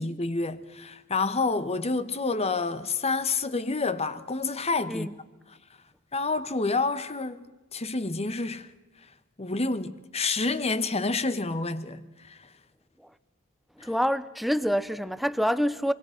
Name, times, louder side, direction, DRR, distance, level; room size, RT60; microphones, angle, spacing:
voice 1, 0.0-5.1 6.1-8.7 9.4-12.5 13.8-13.9, left 3 dB, 30° left, 1.2 m, -29 dB
voice 2, 13.8-15.9, equal, ahead, 0.8 m, -26 dB
25.5 x 24.0 x 5.8 m
head